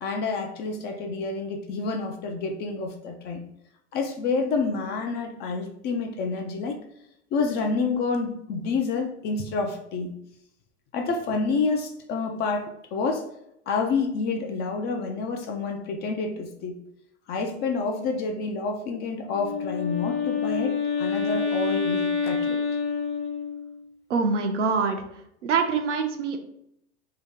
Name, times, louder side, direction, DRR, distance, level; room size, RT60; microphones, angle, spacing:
voice 1, 0.0-3.4 3.9-6.8 7.3-10.1 10.9-13.2 13.7-16.8 17.3-20.7 21.0-22.6, left 4 dB, 30° left, 4 dB, 0.4 m, -28 dB
Wind instrument woodwind instrument, 19.3-23.8, left 5 dB, 65° left, 0.9 m, -27 dB
voice 2, 24.1-25.0 25.4-26.4, right 5 dB, 80° right, 5 dB, 0.7 m, -24 dB
2.8 x 2.7 x 3.5 m, 0.77 s
hypercardioid pair, 95°, 35 cm